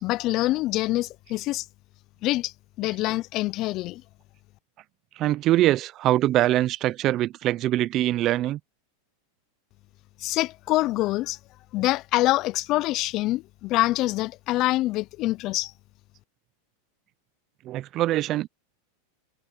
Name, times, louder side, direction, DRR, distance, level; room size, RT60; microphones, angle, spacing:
voice 1, 0.0-1.7 2.2-2.5 2.8-4.0 10.2-11.4 11.7-15.7, left 17 dB, 40° left, 0.4 m, -25 dB
voice 2, 5.2-8.6 17.7-18.5, right 14 dB, 40° right, 0.4 m, -23 dB
supercardioid pair, 135°, 0 cm